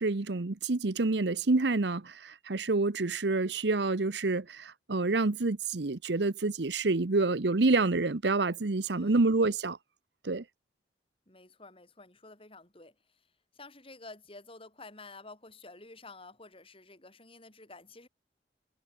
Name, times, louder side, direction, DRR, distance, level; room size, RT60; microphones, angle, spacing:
voice 1, 0.0-9.8 10.2-10.4, right 3 dB, 70° right, 0.9 m, -28 dB
voice 2, 11.3-12.9 13.5-18.1, left 3 dB, 30° left, 6.1 m, -50 dB
head